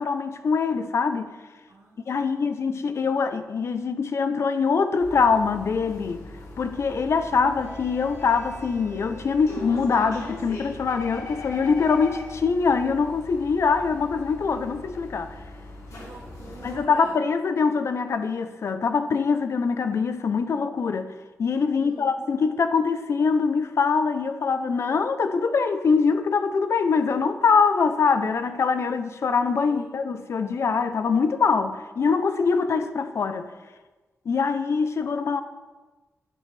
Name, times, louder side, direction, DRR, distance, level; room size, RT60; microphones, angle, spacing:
voice 1, 0.0-1.3 2.1-6.2 6.6-15.4 16.6-21.1 21.4-33.5 34.3-35.4, left 5 dB, 55° left, 0.6 m, -23 dB
voice 2, 1.7-3.1 15.9-17.2 21.7-22.2 29.6-30.1, right 3 dB, 65° right, 1.2 m, -47 dB
sound 1, 5.0-16.8, left 2 dB, 75° left, 2.0 m, -40 dB
11.0 x 10.0 x 3.4 m
wide cardioid pair, 165°, 5 cm